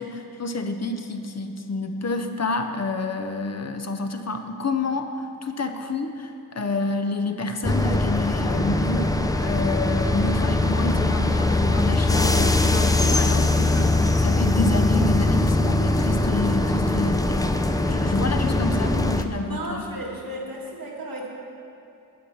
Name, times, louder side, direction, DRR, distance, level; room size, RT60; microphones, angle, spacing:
voice 1, 0.0-5.1 5.4-17.4 17.9-19.9, left 2 dB, 50° left, 6 dB, 0.7 m, -28 dB
sound 1, 7.6-19.2, left 2 dB, 10° left, 0.4 m, -21 dB
voice 2, 19.4-21.3, right 1 dB, 80° right, -2 dB, 1.5 m, -34 dB
8.7 x 7.1 x 5.4 m, 2.7 s
wide cardioid pair, 80°, 34 cm